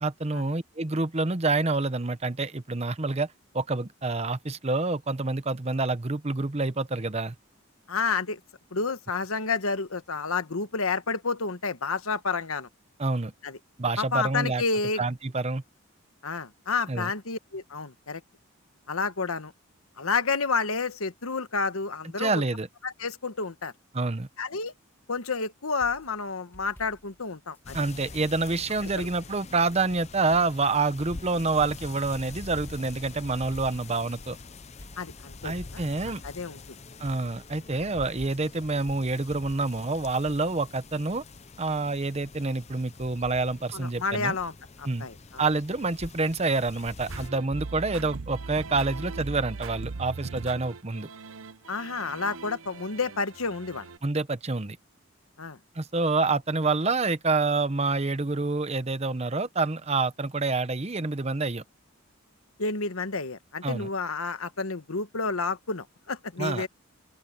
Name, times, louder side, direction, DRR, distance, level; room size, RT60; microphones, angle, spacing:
voice 1, 0.0-7.3 13.0-13.3 13.8-14.6 15.0-15.6 16.9-17.1 22.2-22.7 23.9-24.3 27.7-34.4 35.4-36.2 37.0-41.2 41.6-44.4 44.8-45.1 45.4-51.1 54.0-54.8 55.7-61.6 63.6-63.9 66.4-66.7, right 3 dB, 30° right, 0.8 m, -27 dB
voice 2, 7.9-8.4 8.7-12.7 13.4-13.6 14.0-15.0 16.2-18.2 18.9-19.5 20.0-22.4 22.8-23.7 24.4-24.7 25.1-27.8 35.0-36.6 43.7-45.4 51.7-53.9 55.4-55.6 62.6-66.7, left 4 dB, 80° left, 1.4 m, -30 dB
sound 1, 25.8-27.6 28.0-29.5 29.8-29.9 30.3-32.1 32.5-34.0 34.3-34.4 34.8-36.6 37.0-38.5 39.3-40.7, equal, 10° left, 2.0 m, -53 dB
sound 2, 27.6-47.3, left 3 dB, 30° left, 0.7 m, -45 dB
sound 3, 47.1-54.0, right 4 dB, 75° right, 0.7 m, -39 dB
open air
head